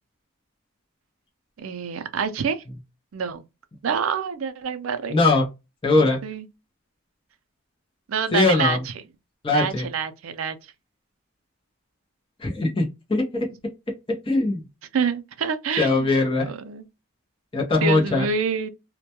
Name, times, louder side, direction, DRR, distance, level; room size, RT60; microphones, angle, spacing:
voice 1, 1.6-2.6 3.1-3.4 3.8-5.2 5.9-6.5 8.1-8.9 9.5-10.7 14.9-16.2 16.5-16.8 17.8-18.7, right 6 dB, 70° right, 0.4 m, -27 dB
voice 2, 5.1-5.5 5.8-6.2 8.3-8.8 9.4-9.9 12.4-13.5 14.1-14.6 15.8-16.5 17.5-18.3, left 3 dB, 25° left, 0.6 m, -21 dB
2.2 x 2.1 x 2.8 m
head